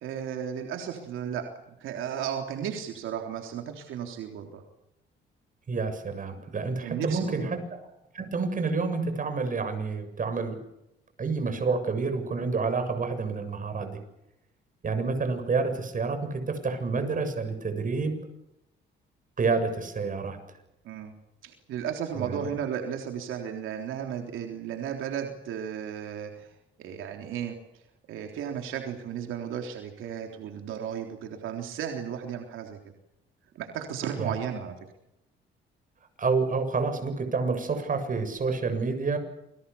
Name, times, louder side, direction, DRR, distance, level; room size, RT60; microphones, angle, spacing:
voice 1, 0.0-1.4 1.8-4.6 6.8-7.5 20.9-21.1 21.4-26.5 26.8-27.6 28.1-32.8 33.6-34.7, right 8 dB, 85° right, 3 dB, 3.6 m, -34 dB
voice 2, 5.7-7.9 8.1-10.6 11.2-14.0 14.8-18.1 19.4-20.4 22.2-22.5 34.2-34.3 36.2-39.2, right 4 dB, 40° right, 8 dB, 7.4 m, -29 dB
28.0 x 23.0 x 7.1 m, 0.85 s
cardioid pair, 90°, 20 cm